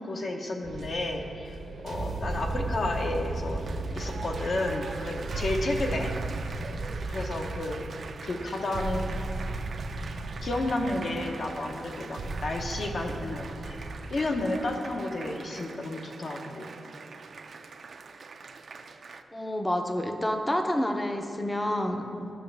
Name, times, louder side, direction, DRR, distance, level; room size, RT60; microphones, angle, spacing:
voice 1, 0.0-1.6 1.8-3.6 4.0-6.1 7.1-7.8 8.2-9.1 10.4-16.7, left 2 dB, 55° left, 2 dB, 0.8 m, -31 dB
sound 1, 0.6-14.9, right 2 dB, 80° right, 0.8 m, -36 dB
Applause, 3.1-19.2, right 4 dB, 55° right, 0.4 m, -44 dB
voice 2, 19.3-22.3, left 1 dB, 15° left, 4 dB, 0.5 m, -29 dB
11.5 x 6.1 x 3.3 m, 2.7 s
wide cardioid pair, 115°, 0 cm